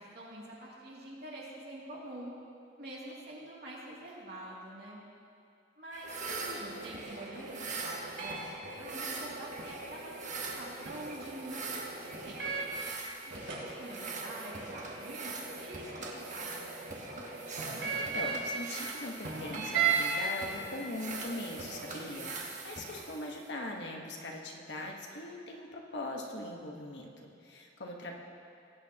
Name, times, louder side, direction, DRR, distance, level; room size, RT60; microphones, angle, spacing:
voice 1, 0.0-2.3 2.8-5.0 5.8-12.7 13.6-16.8, right 1 dB, 55° right, -5 dB, 2.6 m, -46 dB
sound 1, 5.9-23.5, right 4 dB, 40° right, 1.2 m, -43 dB
sound 2, 6.0-12.8 13.3-18.6 19.2-20.2 20.5-22.1, right 6 dB, 85° right, 2.7 m, -38 dB
voice 2, 17.9-28.2, left 1 dB, 65° left, 0 dB, 1.3 m, -41 dB
18.5 x 9.2 x 2.9 m, 2.5 s
head